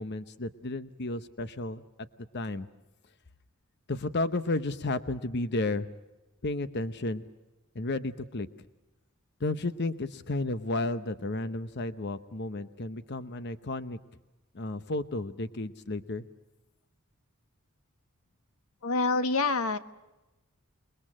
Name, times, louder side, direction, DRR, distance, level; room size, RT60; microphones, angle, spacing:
voice 1, 0.0-1.8 2.3-2.7 3.9-5.9 6.4-7.2 7.7-8.5 9.4-14.0 14.5-16.2, left 2 dB, 50° left, 12 dB, 0.9 m, -32 dB
voice 2, 18.8-19.8, left 3 dB, 85° left, 11 dB, 1.3 m, -26 dB
28.5 x 21.0 x 7.5 m, 1.1 s
head